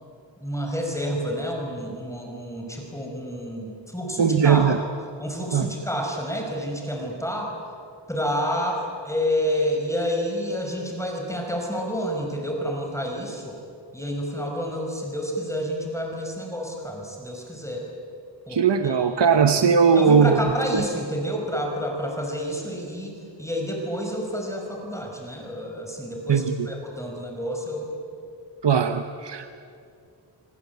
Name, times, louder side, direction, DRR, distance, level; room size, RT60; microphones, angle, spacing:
voice 1, 0.4-4.9 5.2-7.5 8.1-13.6 13.9-17.9 18.5-19.4 19.9-27.9, equal, 5° left, 1 dB, 5.5 m, -29 dB
voice 2, 4.2-4.8 5.5-5.7 18.5-20.4 20.7-20.8 26.3-26.7 28.6-29.5, right 6 dB, 65° right, 8 dB, 1.2 m, -19 dB
27.0 x 25.0 x 8.4 m, 2.4 s
wide cardioid pair, 90°, 46 cm